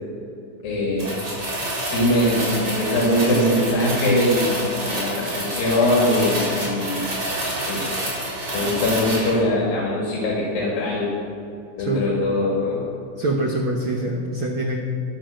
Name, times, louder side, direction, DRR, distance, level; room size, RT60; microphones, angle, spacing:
voice 1, 0.6-1.2 1.8-7.1 7.6-8.0 8.5-11.1 11.8-12.8, left 1 dB, 75° left, -4 dB, 3.7 m, -22 dB
sound 1, 1.0-9.4, right 1 dB, 35° right, 4.9 m, -28 dB
voice 2, 11.8-12.1 13.2-14.8, right 1 dB, 80° right, 1 dB, 1.1 m, -24 dB
12.0 x 12.0 x 6.4 m, 2.8 s
omnidirectional pair, 4.1 m